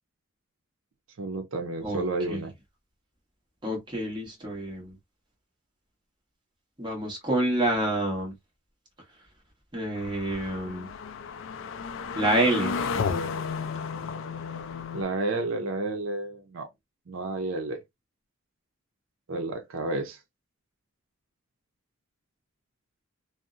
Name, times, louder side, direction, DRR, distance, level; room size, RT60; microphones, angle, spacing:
voice 1, 1.2-2.5 14.9-16.7 17.1-17.8 19.3-20.2, right 2 dB, 85° right, 0.5 m, -31 dB
voice 2, 1.8-2.4 3.6-4.9 6.8-8.3 9.7-10.9 12.1-12.8, right 1 dB, 25° right, 1.1 m, -28 dB
sound 1, 10.0-15.0, left 5 dB, 70° left, 0.4 m, -33 dB
2.7 x 2.0 x 2.4 m
head